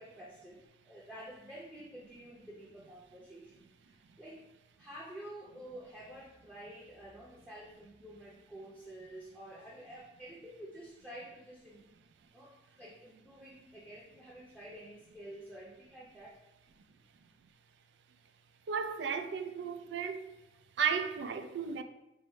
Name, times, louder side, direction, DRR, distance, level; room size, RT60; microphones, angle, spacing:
voice 1, 0.0-4.4 4.8-11.8 12.3-16.4, right 1 dB, 10° right, 0.6 m, -50 dB
voice 2, 18.7-20.4 20.8-21.8, right 6 dB, 85° right, 0.3 m, -34 dB
4.6 x 2.0 x 4.4 m
head